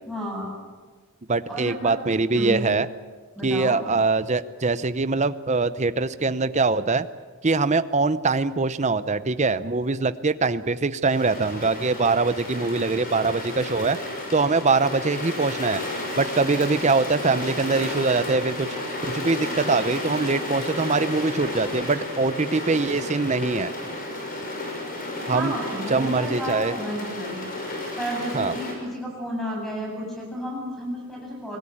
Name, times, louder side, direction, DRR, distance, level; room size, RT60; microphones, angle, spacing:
voice 1, 0.1-0.5 1.5-2.0 2.3-2.6 3.4-3.8 25.3-27.5 28.0-31.6, equal, ahead, -1 dB, 7.7 m, -32 dB
voice 2, 1.3-2.9 3.4-7.1 7.4-14.0 14.3-15.8 16.2-18.7 19.0-23.7 25.3-25.5 25.9-26.8 28.3-28.5, right 3 dB, 30° right, 13 dB, 0.7 m, -23 dB
sound 1, 11.1-28.7, left 1 dB, 40° left, 6.1 m, -32 dB
25.5 x 18.5 x 8.7 m, 1.5 s
head